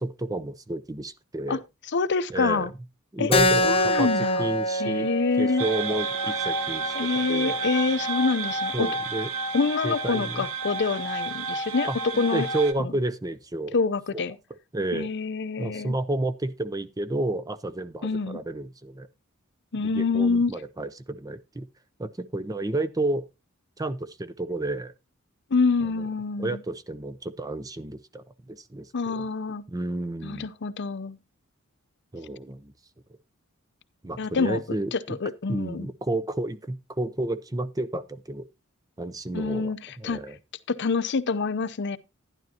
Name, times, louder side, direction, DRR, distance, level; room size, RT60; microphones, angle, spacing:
voice 1, 0.0-1.6 2.3-2.7 3.1-5.1 5.4-7.6 8.7-9.3 9.8-10.4 11.9-13.7 14.7-15.1 15.6-19.1 19.8-21.7 22.0-23.2 23.8-24.9 25.8-26.0 26.4-29.3 29.7-30.5 32.1-32.7 34.0-35.2 35.5-38.5 39.0-40.4, right 2 dB, 15° right, 0.6 m, -31 dB
voice 2, 1.9-2.7 3.2-3.3 3.6-4.5 4.8-5.6 6.9-8.9 9.5-11.9 12.1-12.5 13.7-14.4 14.9-16.0 18.0-18.4 19.7-20.5 25.5-26.5 28.9-29.6 30.2-31.2 34.2-34.6 34.9-35.9 39.3-40.2 40.7-42.0, left 4 dB, 55° left, 0.6 m, -26 dB
Keyboard (musical), 3.3-8.4, left 1 dB, 25° left, 0.9 m, -27 dB
sound 1, 5.6-12.7, right 3 dB, 90° right, 1.1 m, -30 dB
12.0 x 10.5 x 2.9 m
head